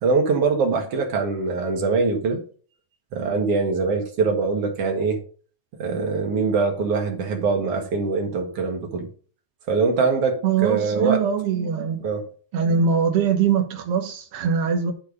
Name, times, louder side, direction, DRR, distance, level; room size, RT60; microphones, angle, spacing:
voice 1, 0.0-2.4 3.1-5.2 5.8-9.1 9.7-11.2 12.0-12.2, right 4 dB, 50° right, 2.3 m, -23 dB
voice 2, 10.4-12.1 12.5-14.9, right 6 dB, 75° right, 1.3 m, -22 dB
10.5 x 4.4 x 5.3 m
omnidirectional pair, 4.3 m